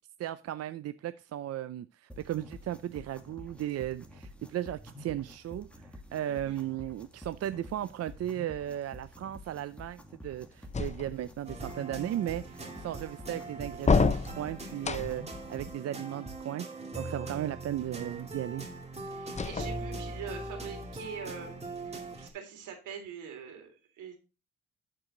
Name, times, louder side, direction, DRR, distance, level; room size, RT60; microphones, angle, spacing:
voice 1, 0.2-18.7, right 12 dB, 55° right, 13 dB, 0.5 m, -36 dB
sound 1, 2.1-15.7, left 1 dB, 5° left, 1.7 m, -50 dB
voice 2, 6.2-6.7 19.1-24.2, right 7 dB, 85° right, 3 dB, 3.4 m, -44 dB
sound 2, 10.7-11.5 13.8-15.4 19.3-20.3, left 4 dB, 25° left, 0.7 m, -29 dB
sound 3, 11.4-22.3, right 2 dB, 20° right, 2.2 m, -41 dB
12.0 x 4.9 x 3.8 m, 0.31 s
cardioid pair, 90°, 30 cm